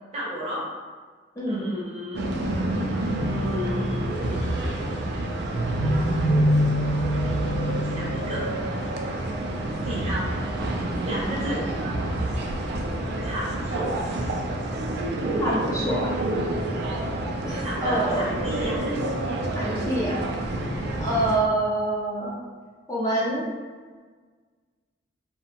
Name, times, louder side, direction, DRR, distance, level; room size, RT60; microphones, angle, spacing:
voice 1, 0.1-0.6 1.5-2.2 3.3-4.1 7.7-8.5 9.8-10.3 11.0-11.7 13.2-14.0 17.6-18.8, equal, 35° right, -6 dB, 0.7 m, -33 dB
sound 1, 2.1-21.4, right 1 dB, 60° right, 0.3 m, -27 dB
voice 2, 15.4-16.1 17.4-18.4 19.5-20.2 21.0-22.4 22.9-23.5, right 1 dB, 15° left, -6 dB, 0.4 m, -26 dB
2.6 x 2.1 x 2.8 m, 1.5 s
head